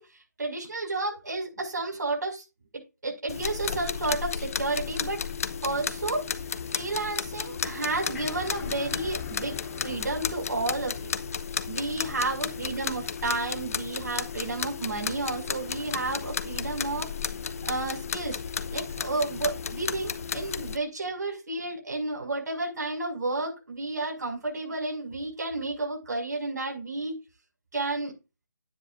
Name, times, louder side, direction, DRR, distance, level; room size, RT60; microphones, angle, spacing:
voice 1, 0.0-2.4 3.0-5.2 5.6-6.2 6.7-9.6 9.8-11.1 11.6-17.1 17.6-18.4 18.7-27.2 27.7-28.1, right 2 dB, 70° right, 0 dB, 5.7 m, -31 dB
sound 1, 3.3-20.8, left 6 dB, 50° left, 0.8 m, -33 dB
sound 2, 7.6-11.3, left 9 dB, 15° left, 1.1 m, -44 dB
11.0 x 9.8 x 2.5 m, 0.28 s
figure-of-eight pair, 155°, 10 cm